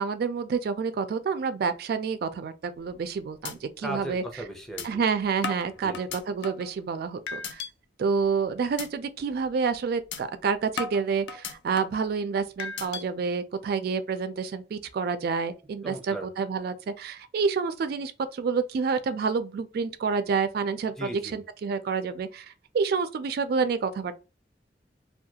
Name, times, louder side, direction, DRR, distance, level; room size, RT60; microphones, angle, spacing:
voice 1, 0.0-4.2 4.8-7.6 8.0-24.2, right 5 dB, 60° right, 0.3 m, -28 dB
sound 1, 2.8-3.1 3.4-3.5 4.0-4.1 4.8-4.9 5.4-6.7 7.3-7.7 8.1-8.4 8.8-8.9 9.3-9.5 10.1-10.2 10.8-12.0 12.6-13.0, left 5 dB, 80° left, 0.4 m, -35 dB
voice 2, 3.8-5.0 5.8-6.0 15.8-16.3 21.0-21.4, right 1 dB, ahead, 0.6 m, -37 dB
2.3 x 2.2 x 2.7 m
head